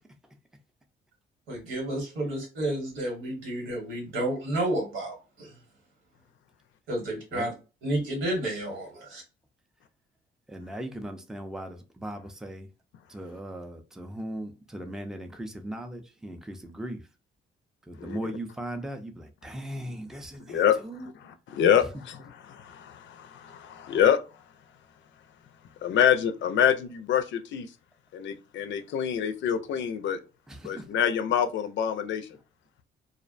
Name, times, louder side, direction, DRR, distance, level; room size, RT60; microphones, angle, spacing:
voice 1, 1.5-5.5 6.9-7.5 7.8-9.2, right 1 dB, 85° right, 1.4 m, -31 dB
voice 2, 10.5-12.7 13.1-17.1 17.8-21.1 21.8-21.9 30.5-30.9, right 1 dB, 5° right, 0.4 m, -38 dB
voice 3, 20.5-20.8 21.5-22.2 22.5-24.2 25.8-27.7 28.1-30.2 30.6-32.3, left 9 dB, 70° left, 0.5 m, -25 dB
2.4 x 2.1 x 2.5 m
cardioid pair, 90°, 20 cm